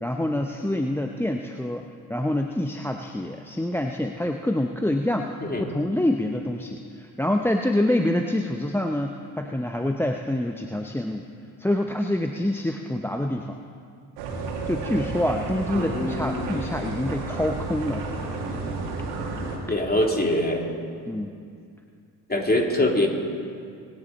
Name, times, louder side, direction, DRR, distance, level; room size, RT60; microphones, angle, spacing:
voice 1, 0.0-11.3 11.6-13.6 14.6-18.1 21.1-21.3, left 1 dB, 5° left, 4 dB, 0.8 m, -26 dB
sound 1, 14.2-19.6, right 3 dB, 90° right, 2.1 m, -31 dB
voice 2, 15.7-16.5 19.7-20.7 22.3-23.1, left 1 dB, 20° left, 0 dB, 3.2 m, -23 dB
24.5 x 10.0 x 4.2 m, 2.3 s
hypercardioid pair, 55°, 46 cm